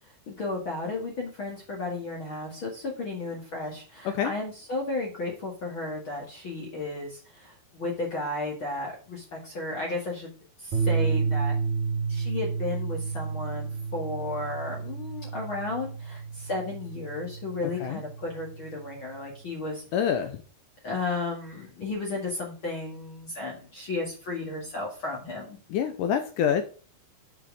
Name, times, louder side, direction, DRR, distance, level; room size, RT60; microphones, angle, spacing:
voice 1, 0.3-10.3 10.6-11.5 12.1-19.8 20.8-25.6, left 2 dB, 40° left, -2 dB, 2.1 m, -34 dB
sound 1, 10.7-19.1, right 5 dB, 60° right, 2.4 m, -31 dB
voice 2, 19.9-20.3 25.7-26.6, left 8 dB, 80° left, 8 dB, 1.8 m, -26 dB
7.6 x 6.5 x 4.8 m, 0.38 s
omnidirectional pair, 4.7 m